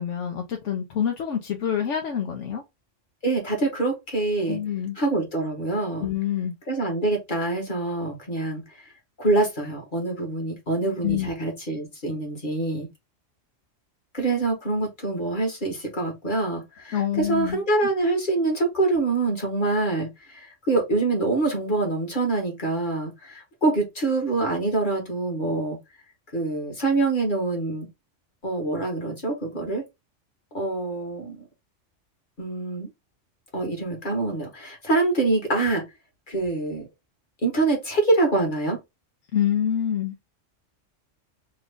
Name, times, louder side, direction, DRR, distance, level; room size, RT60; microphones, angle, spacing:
voice 1, 0.0-2.6 4.5-5.0 6.0-6.5 11.0-11.3 16.9-17.6 39.3-40.1, left 9 dB, 80° left, 1.0 m, -26 dB
voice 2, 3.2-4.6 5.0-6.1 6.7-8.9 9.2-12.9 14.1-25.8 26.3-27.9 28.4-29.8 30.5-31.5 32.4-32.9 33.5-35.8 36.3-36.9 37.4-38.8, right 2 dB, 40° left, 1.5 m, -25 dB
3.2 x 2.4 x 3.6 m
omnidirectional pair, 1.3 m